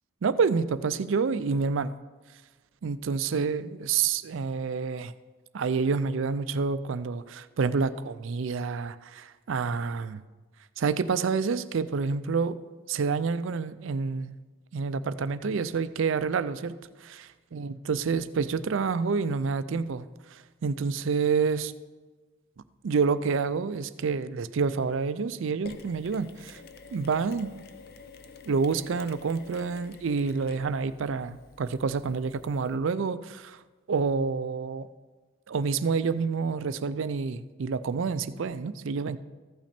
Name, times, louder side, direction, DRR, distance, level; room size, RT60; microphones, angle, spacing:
voice 1, 0.2-1.9 2.8-5.1 5.5-10.2 10.8-12.6 12.9-14.4 14.7-17.2 17.5-21.7 22.8-26.6 26.9-27.5 28.5-33.6 33.9-34.9 35.5-39.2, right 5 dB, 65° right, 14 dB, 0.4 m, -28 dB
Mechanisms, 25.6-32.8, left 4 dB, 45° left, 0.5 m, -49 dB
14.5 x 6.0 x 4.3 m, 1.3 s
head